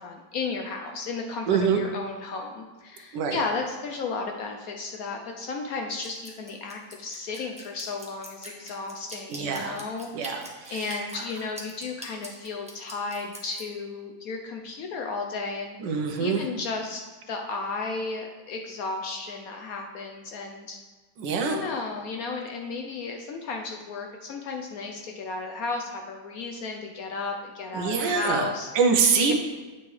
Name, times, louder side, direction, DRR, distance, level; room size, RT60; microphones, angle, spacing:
voice 1, 0.0-10.1 10.7-20.8 21.4-28.7 29.1-29.3, left 4 dB, 70° left, 2 dB, 0.9 m, -34 dB
voice 2, 1.5-1.8 3.1-3.4 9.3-9.8 10.1-11.0 15.8-16.4 21.2-21.6 27.7-29.3, right 5 dB, 80° right, 4 dB, 1.4 m, -25 dB
Drip, 6.0-13.6, right 1 dB, 5° right, 0.5 m, -42 dB
8.8 x 5.8 x 3.1 m, 1.3 s
omnidirectional pair, 1.9 m